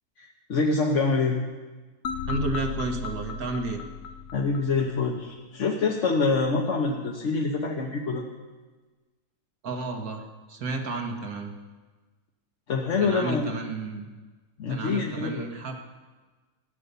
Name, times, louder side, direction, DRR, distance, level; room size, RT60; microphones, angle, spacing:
voice 1, 0.2-1.4 4.3-8.2 12.7-13.5 14.6-15.5, left 4 dB, 50° left, 0 dB, 1.3 m, -26 dB
sound 1, 2.0-5.1, left 5 dB, 75° left, 1.3 m, -35 dB
voice 2, 2.2-3.8 9.6-10.2 10.5-11.5 13.0-14.1 14.7-15.8, right 3 dB, 60° right, 4 dB, 1.9 m, -31 dB
15.5 x 9.7 x 6.8 m, 1.3 s
omnidirectional pair, 1.8 m